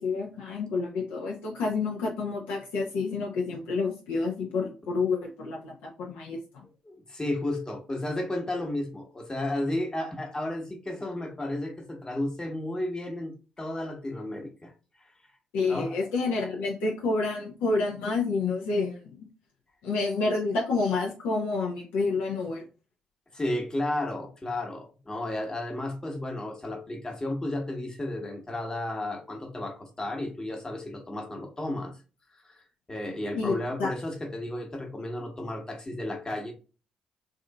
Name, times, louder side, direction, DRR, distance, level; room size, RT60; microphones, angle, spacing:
voice 1, 0.0-6.6 15.5-19.3 19.8-22.6 33.3-33.9, left 3 dB, 60° left, -1 dB, 0.6 m, -29 dB
voice 2, 6.8-14.7 15.0-15.1 15.7-16.0 23.3-31.9 32.4-36.5, left 1 dB, 20° left, 3 dB, 1.1 m, -33 dB
3.6 x 2.6 x 2.2 m, 0.33 s
figure-of-eight pair, 45°, 3 cm